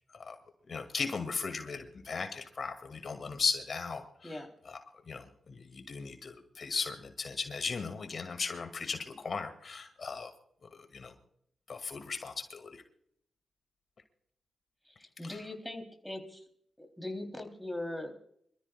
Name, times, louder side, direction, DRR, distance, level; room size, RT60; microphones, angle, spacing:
voice 1, 0.7-4.8 5.1-10.3 10.9-11.1 11.7-12.8 15.2-15.4, left 4 dB, 55° left, 6 dB, 2.1 m, -37 dB
voice 2, 15.0-16.4 16.8-18.1, left 1 dB, 5° left, 4 dB, 3.0 m, -40 dB
26.5 x 13.5 x 2.3 m, 0.68 s
cardioid pair, 80°, 0 cm